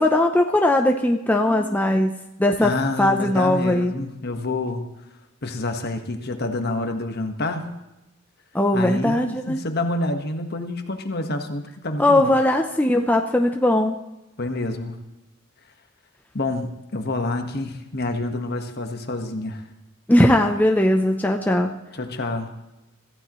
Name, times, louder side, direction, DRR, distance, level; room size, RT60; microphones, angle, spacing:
voice 1, 0.0-2.7 3.0-3.9 8.5-9.6 12.0-13.9 20.1-21.8, left 1 dB, 10° left, 2 dB, 0.6 m, -19 dB
voice 2, 2.6-4.9 5.4-7.7 8.7-12.3 14.4-15.0 16.3-19.6 21.9-22.5, left 2 dB, 50° left, 5 dB, 1.5 m, -28 dB
25.5 x 14.5 x 3.1 m, 0.96 s
head